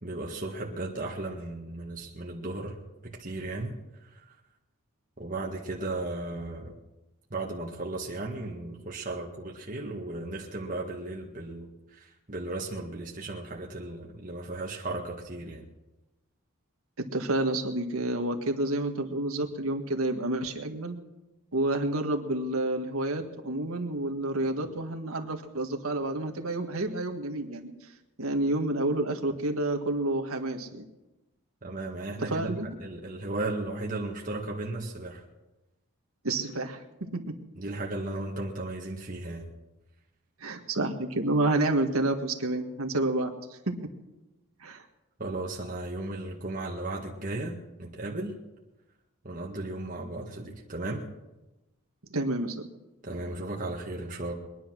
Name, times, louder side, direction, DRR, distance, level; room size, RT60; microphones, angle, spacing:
voice 1, 0.0-4.2 5.2-6.7 7.3-15.6 31.6-35.2 37.6-39.5 45.2-48.3 49.2-51.0 53.0-54.3, right 2 dB, 40° right, -1 dB, 1.7 m, -35 dB
voice 2, 17.1-21.0 21.5-27.7 28.2-30.8 32.2-32.7 36.2-36.8 40.4-43.3 44.6-44.8 52.1-52.7, right 2 dB, 80° right, 4 dB, 1.8 m, -29 dB
22.5 x 10.5 x 6.2 m, 1.0 s
head